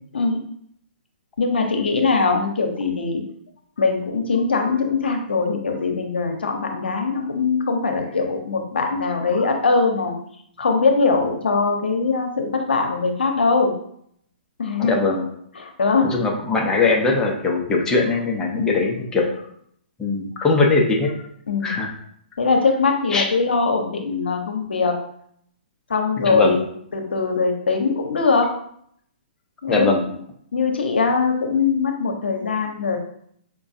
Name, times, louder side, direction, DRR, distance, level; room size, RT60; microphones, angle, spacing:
voice 1, 0.1-0.4 1.4-3.2 3.8-10.2 10.6-13.7 14.6-15.1 15.6-16.1 18.5-18.7 21.5-21.7 22.4-25.0 25.9-26.6 26.9-28.5 29.6-29.9 30.5-33.0, left 4 dB, 85° left, 3 dB, 0.7 m, -21 dB
voice 2, 14.8-15.3 16.0-19.3 20.0-21.1 21.6-21.9 23.1-23.3 26.2-26.6 29.7-30.0, left 3 dB, 10° left, -1 dB, 0.6 m, -20 dB
4.8 x 2.3 x 2.6 m, 0.67 s
hypercardioid pair, 135°, 5 cm